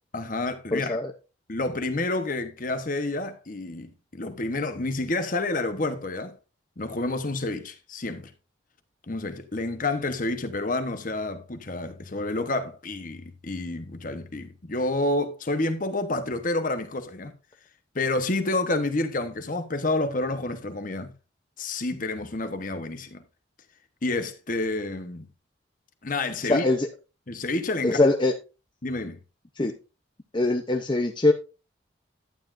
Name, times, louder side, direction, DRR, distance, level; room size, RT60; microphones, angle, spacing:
voice 1, 0.1-1.0 1.5-6.3 6.8-8.3 9.1-17.3 17.9-21.1 21.6-23.2 24.0-25.3 26.0-26.6 27.3-28.0 28.8-29.2, left 2 dB, 40° left, 1.1 m, -29 dB
voice 2, 0.7-1.1 26.4-26.9 27.8-28.3 29.6-29.7 30.3-31.3, left 2 dB, 25° left, 0.7 m, -22 dB
11.5 x 9.6 x 2.6 m
head